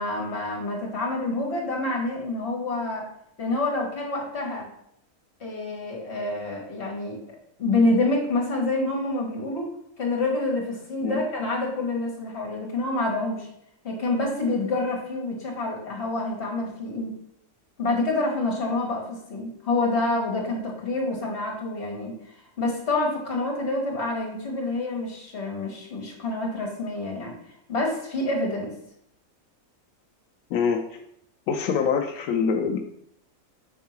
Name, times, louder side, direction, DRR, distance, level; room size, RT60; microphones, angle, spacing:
voice 1, 0.0-3.1 3.4-4.7 5.4-7.2 7.6-13.5 13.8-17.1 17.8-27.3 27.7-28.7, left 2 dB, 50° left, -1 dB, 1.8 m, -27 dB
voice 2, 30.5-31.0 31.5-32.8, left 6 dB, 85° left, 4 dB, 1.0 m, -25 dB
5.5 x 3.6 x 5.7 m, 0.73 s
omnidirectional pair, 1.5 m